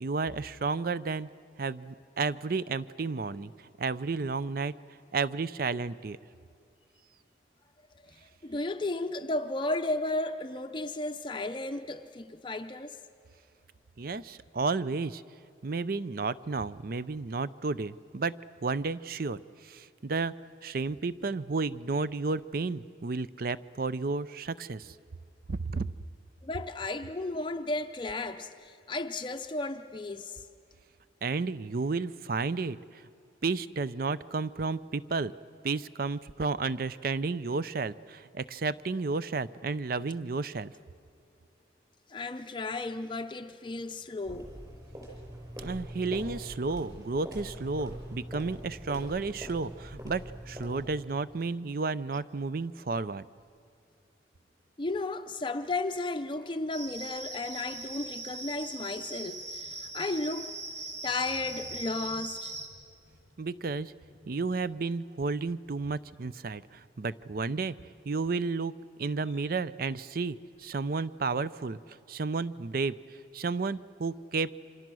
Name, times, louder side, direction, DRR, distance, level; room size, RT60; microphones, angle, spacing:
voice 1, 0.0-1.3 1.6-3.5 3.8-4.7 5.1-6.2 14.0-15.2 15.6-18.3 18.6-20.3 20.6-24.9 25.5-25.9 31.2-33.0 33.4-35.3 35.6-40.7 45.6-53.3 63.4-63.9 64.3-67.8 68.1-68.7 69.0-73.0 73.3-74.5, right 4 dB, 50° right, 0.5 m, -32 dB
voice 2, 8.1-13.0 26.4-30.5 42.1-44.5 54.8-60.5 60.8-62.6, left 2 dB, 25° left, 0.6 m, -34 dB
sound 1, 44.2-51.1, right 1 dB, 20° right, 6.0 m, -43 dB
sound 2, 56.7-62.7, right 2 dB, 70° right, 3.0 m, -40 dB
28.0 x 26.0 x 6.2 m
head